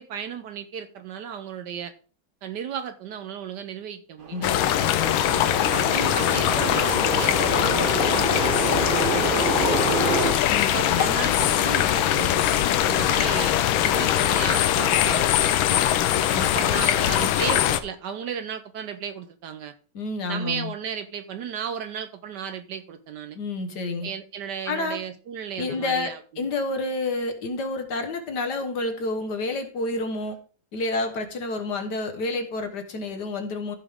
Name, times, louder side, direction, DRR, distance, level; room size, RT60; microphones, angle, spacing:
voice 1, 0.0-1.9 2.4-4.5 5.7-10.2 10.7-12.4 12.8-13.5 13.8-15.8 16.4-19.7 20.3-23.4 24.0-26.2, right 8 dB, 70° right, 10 dB, 1.1 m, -34 dB
sound 1, 4.2-10.3, right 4 dB, 35° right, 0.9 m, -28 dB
voice 2, 4.3-5.7 10.5-11.2 16.3-16.5 19.9-20.7 23.4-24.1 24.7-25.0 25.6-30.4 30.7-33.8, left 2 dB, 60° left, 6 dB, 1.7 m, -29 dB
sound 2, 4.4-17.8, left 11 dB, 85° left, 1.5 m, -22 dB
14.5 x 5.1 x 3.6 m, 0.39 s
omnidirectional pair, 2.2 m